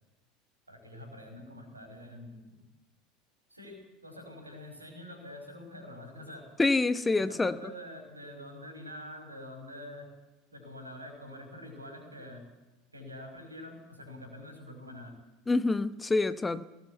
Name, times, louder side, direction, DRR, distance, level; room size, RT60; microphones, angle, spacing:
voice 1, 0.7-2.6 3.5-6.5 7.2-10.1 10.5-12.4 12.9-15.1, left 1 dB, 85° right, 5 dB, 5.5 m, -46 dB
voice 2, 6.6-7.5 15.5-16.6, left 3 dB, 15° left, 14 dB, 0.9 m, -26 dB
22.0 x 19.5 x 8.1 m, 1.0 s
figure-of-eight pair, 75°, 0 cm